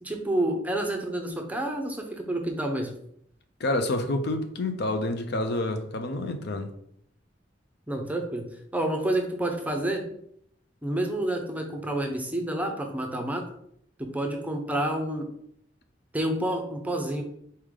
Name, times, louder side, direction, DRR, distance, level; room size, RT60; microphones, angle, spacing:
voice 1, 0.0-2.9 7.9-10.1 10.8-13.4 14.0-15.3 16.1-17.2, right 1 dB, 10° right, 0.6 m, -29 dB
voice 2, 3.6-6.7, left 2 dB, 60° left, 0.5 m, -28 dB
4.2 x 3.3 x 3.7 m
head